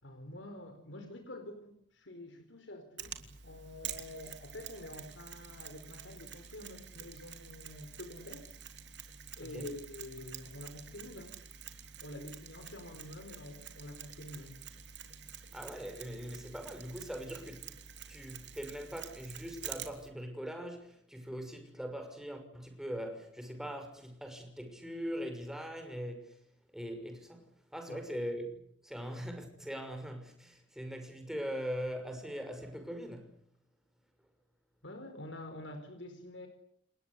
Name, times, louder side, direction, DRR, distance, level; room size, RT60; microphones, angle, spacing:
voice 1, 0.0-8.5 9.4-11.4 11.8-14.6 27.9-28.0 34.8-36.5, left 1 dB, 80° left, 4.5 m, -47 dB
Mechanisms, 3.0-20.1, right 8 dB, 65° right, 3.4 m, -48 dB
voice 2, 15.5-17.7 18.1-26.4 26.7-27.4 27.7-33.3, equal, 5° right, 6.1 m, -41 dB
29.5 x 21.0 x 8.3 m
head